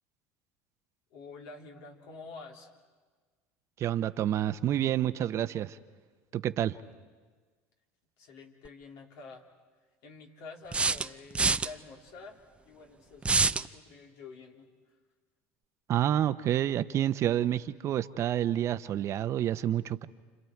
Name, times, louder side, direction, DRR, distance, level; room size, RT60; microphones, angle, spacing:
voice 1, 1.1-2.7 8.2-9.5 10.0-14.7, left 4 dB, 70° left, 1 dB, 3.6 m, -48 dB
voice 2, 3.8-5.8 6.3-6.7 15.9-20.1, right 11 dB, 45° right, 12 dB, 0.9 m, -28 dB
sound 1, 8.7-8.8 10.7-11.7 13.2-13.7, right 4 dB, 15° right, 0.6 m, -26 dB
30.0 x 29.0 x 4.6 m, 1.4 s
supercardioid pair, 95°, 7 cm